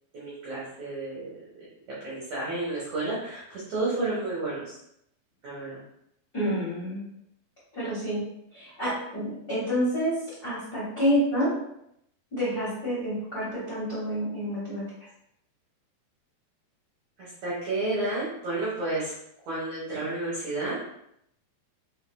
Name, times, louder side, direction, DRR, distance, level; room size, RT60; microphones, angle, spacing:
voice 1, 0.1-1.3 2.0-4.8 5.4-5.8 17.2-19.1 19.5-20.8, right 2 dB, 75° right, -7 dB, 1.7 m, -31 dB
voice 2, 6.3-7.0 7.7-8.2 8.5-10.2 10.4-11.5 12.3-14.8, equal, 60° left, -9 dB, 0.9 m, -28 dB
5.6 x 3.8 x 2.2 m, 0.77 s
omnidirectional pair, 4.8 m